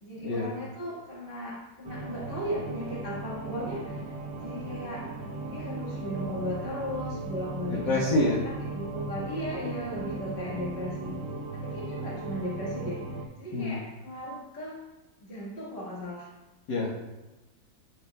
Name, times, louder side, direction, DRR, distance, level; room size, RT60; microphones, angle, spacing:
voice 1, 0.0-5.1 5.4-11.2 11.5-14.9 15.2-16.3, equal, 30° left, -6 dB, 1.9 m, -37 dB
sound 1, 1.8-13.2, right 2 dB, 85° right, 1.7 m, -37 dB
voice 2, 7.9-8.4 13.5-13.8 16.7-17.0, left 2 dB, 75° left, -7 dB, 2.1 m, -26 dB
16.0 x 6.7 x 2.4 m, 1.1 s
omnidirectional pair, 1.9 m